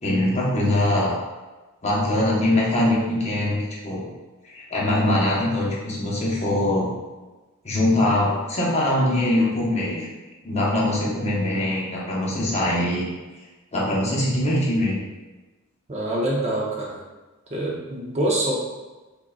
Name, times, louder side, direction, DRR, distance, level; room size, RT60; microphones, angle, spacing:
voice 1, 0.0-1.1 1.8-3.6 3.8-4.1 4.4-6.9 7.6-10.1 10.4-13.1 13.7-15.0, left 1 dB, 30° left, -5 dB, 0.9 m, -22 dB
voice 2, 15.9-17.0 17.5-18.5, right 1 dB, 30° right, -3 dB, 0.6 m, -25 dB
3.7 x 3.6 x 2.3 m, 1.2 s
head